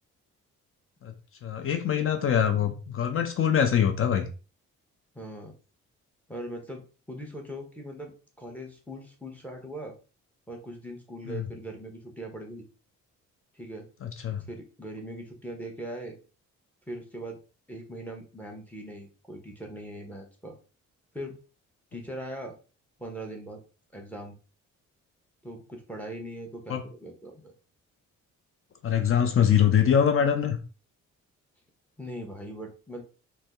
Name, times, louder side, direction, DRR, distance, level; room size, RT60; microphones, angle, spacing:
voice 1, 1.4-4.3 11.3-11.4 14.0-14.4 26.7-26.8 28.8-30.6, left 8 dB, 45° left, 0.5 m, -23 dB
voice 2, 5.1-5.5 6.3-9.9 10.5-12.6 13.5-13.9 14.5-16.2 16.9-17.4 17.7-20.6 21.1-21.4 21.9-22.5 23.0-23.6 23.9-24.3 25.4-27.5 32.0-33.0, right 1 dB, 5° left, 0.9 m, -40 dB
2.6 x 2.1 x 3.4 m
cardioid pair, 90°, 30 cm